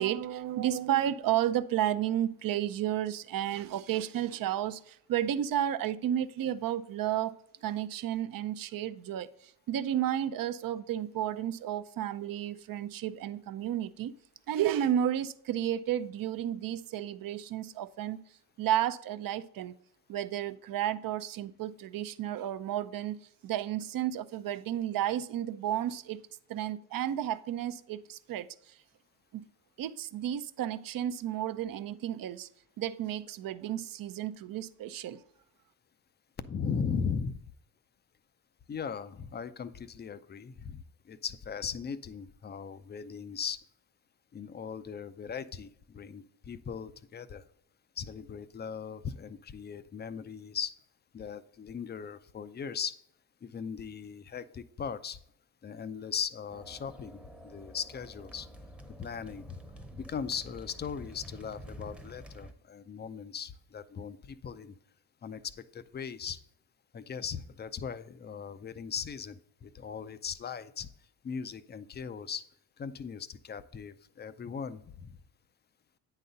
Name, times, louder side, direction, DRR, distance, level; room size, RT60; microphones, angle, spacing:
voice 1, 0.0-7.3 7.6-14.1 14.5-18.2 18.6-19.7 20.1-23.2 23.4-26.2 26.5-28.8 29.3-29.4 29.8-32.5 32.8-35.2, right 11 dB, 45° right, 0.5 m, -32 dB
voice 2, 36.4-37.4 38.7-43.6 44.3-47.4 48.0-50.7 51.1-53.0 53.4-55.2 55.6-58.5 59.0-59.6 60.0-64.8 65.2-66.4 66.9-70.9 71.2-72.5 72.8-75.2, left 6 dB, 20° left, 0.4 m, -38 dB
sound 1, 56.5-62.5, equal, ahead, 0.8 m, -49 dB
9.1 x 4.1 x 3.9 m
hypercardioid pair, 60°, 50 cm